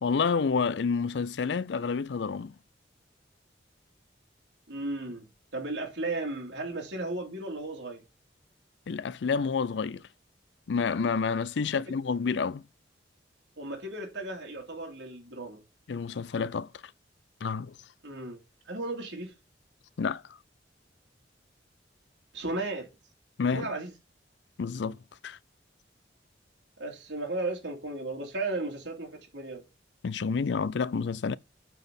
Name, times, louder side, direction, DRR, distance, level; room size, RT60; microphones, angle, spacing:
voice 1, 0.0-2.5 8.9-10.0 10.7-12.6 15.9-16.7 17.4-17.7 20.0-20.2 23.4-23.7 24.6-25.0 25.2-25.4 30.0-31.4, left 5 dB, 70° left, 0.4 m, -29 dB
voice 2, 4.7-5.3 5.5-8.0 13.6-15.6 18.0-19.3 22.3-22.9 23.5-23.9 26.8-29.6, right 2 dB, 85° right, 2.8 m, -35 dB
9.0 x 4.1 x 6.9 m
head